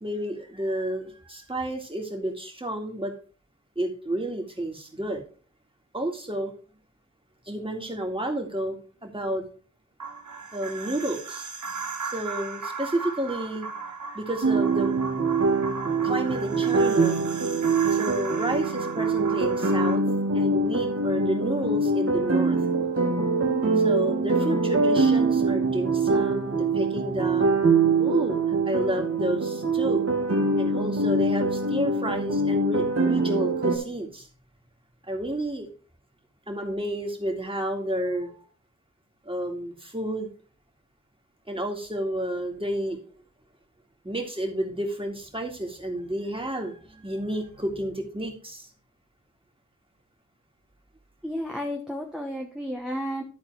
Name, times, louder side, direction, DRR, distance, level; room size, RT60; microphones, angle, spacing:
voice 1, 0.0-3.1 3.8-5.2 5.9-6.5 7.5-8.8 9.0-9.4 10.5-11.5 12.0-15.0 16.0-17.2 17.9-20.0 20.3-22.6 23.8-27.5 28.0-30.1 30.6-34.3 35.0-35.7 36.5-38.5 39.3-40.3 41.5-43.0 44.0-48.7, right 1 dB, 20° right, 2 dB, 2.2 m, -31 dB
sound 1, 10.0-20.0, right 5 dB, 80° right, 1.2 m, -36 dB
sound 2, 14.4-33.8, right 3 dB, 50° right, 1.5 m, -24 dB
voice 2, 51.2-53.2, equal, ahead, 2 dB, 1.0 m, -32 dB
11.5 x 4.1 x 4.6 m, 0.40 s
wide cardioid pair, 55°, 29 cm